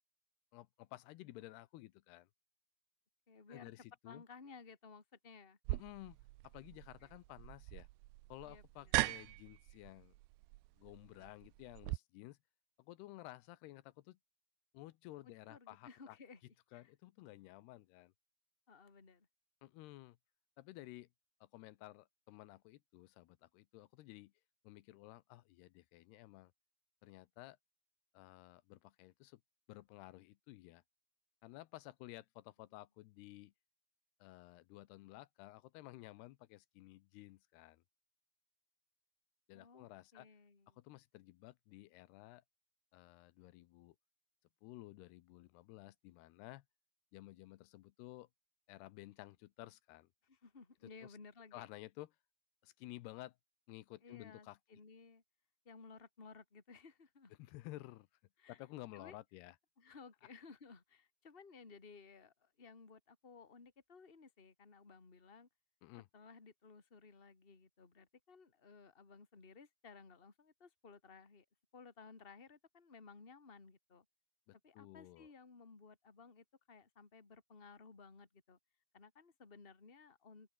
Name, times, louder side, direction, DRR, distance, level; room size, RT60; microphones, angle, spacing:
voice 1, 0.5-2.3 3.5-4.2 5.7-6.2 6.4-7.9 8.3-10.1 10.8-12.4 12.8-14.2 14.7-16.2 16.7-18.1 19.6-20.2 20.6-21.1 21.4-24.3 24.6-26.5 27.0-27.6 28.1-29.4 29.7-30.8 31.4-33.5 34.2-37.8 39.5-40.3 40.7-42.4 42.9-44.0 44.6-46.6 47.1-48.3 48.7-50.1 51.0-51.2 51.5-52.2 52.6-53.4 53.7-54.6 57.3-58.1 58.5-59.6 65.8-66.1 74.5-75.3, left 17 dB, 85° left, 2.9 m, -54 dB
voice 2, 3.3-3.7 4.0-5.6 7.0-7.1 8.5-8.9 15.5-16.9 18.7-19.3 39.5-39.9 40.1-40.8 50.3-51.6 54.0-55.2 55.6-57.3 58.4-58.6 58.9-59.2 59.8-65.5 66.1-71.4 71.7-74.0 74.6-78.6 78.9-80.5, left 4 dB, 15° left, 2.2 m, -58 dB
sound 1, 5.7-12.0, right 21 dB, 85° right, 2.6 m, -41 dB
omnidirectional pair, 4.7 m